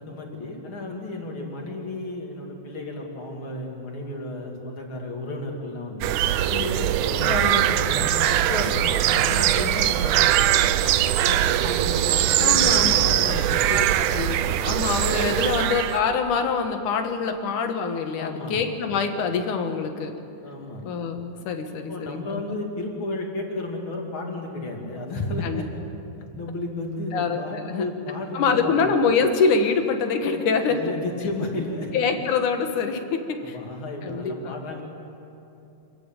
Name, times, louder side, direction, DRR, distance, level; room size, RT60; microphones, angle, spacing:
voice 1, 0.0-6.2 7.0-10.2 10.9-13.6 18.2-18.6 20.4-20.8 21.6-25.7 26.2-28.8 30.7-32.1 33.5-34.8, left 2 dB, 45° left, 0 dB, 3.4 m, -33 dB
sound 1, 6.0-16.0, right 12 dB, 90° right, 2.2 m, -21 dB
voice 2, 6.4-7.0 12.4-13.4 13.7-20.1 20.8-22.4 25.4-25.6 27.1-27.9 28.3-30.8 31.9-33.6 34.0-34.5, left 5 dB, 85° left, 6 dB, 3.0 m, -25 dB
26.5 x 14.5 x 9.1 m, 2.8 s
omnidirectional pair, 3.4 m